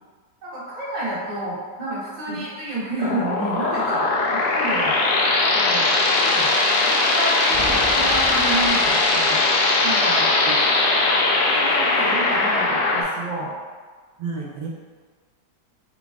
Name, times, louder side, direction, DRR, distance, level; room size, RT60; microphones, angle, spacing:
voice 1, 0.4-4.1 4.5-5.0 5.5-6.5 6.8-9.4 9.8-10.3 11.5-13.5, right 2 dB, 30° right, -9 dB, 1.1 m, -29 dB
sound 1, 3.0-13.0, left 3 dB, 70° left, 0.8 m, -20 dB
sound 2, 7.5-9.6, equal, 30° left, 0.7 m, -35 dB
voice 2, 14.2-14.7, right 5 dB, 80° right, -3 dB, 1.2 m, -31 dB
4.0 x 3.3 x 2.3 m, 1.5 s
omnidirectional pair, 1.8 m